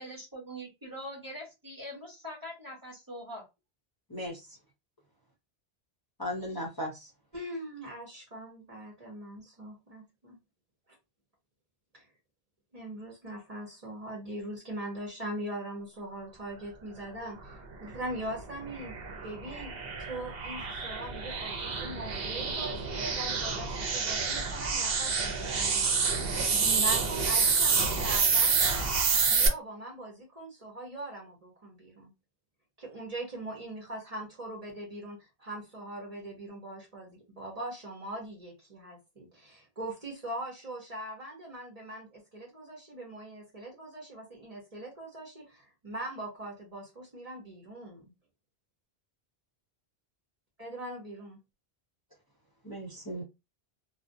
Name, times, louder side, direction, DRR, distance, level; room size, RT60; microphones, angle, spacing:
voice 1, 0.0-3.4, equal, 20° right, -3 dB, 1.1 m, -43 dB
voice 2, 4.1-4.4 6.2-7.1 52.6-53.2, left 1 dB, 25° left, -4 dB, 0.5 m, -36 dB
voice 3, 7.3-10.4 11.9-12.1 12.7-18.9 19.2-28.9 29.3-32.1 32.8-48.1 50.6-51.4, right 1 dB, 40° right, -2 dB, 0.9 m, -41 dB
sound 1, 17.9-29.5, right 5 dB, 70° right, 0.8 m, -28 dB
2.5 x 2.0 x 2.5 m, 0.24 s
omnidirectional pair, 1.1 m